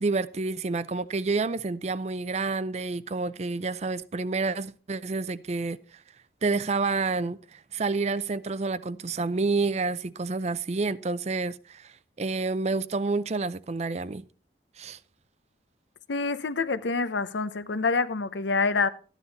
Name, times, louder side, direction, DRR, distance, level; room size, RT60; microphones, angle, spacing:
voice 1, 0.0-5.8 6.4-14.2 14.8-15.0, right 3 dB, 35° right, 0.5 m, -29 dB
voice 2, 16.1-18.9, left 4 dB, 80° left, 0.8 m, -26 dB
13.5 x 9.8 x 4.1 m
head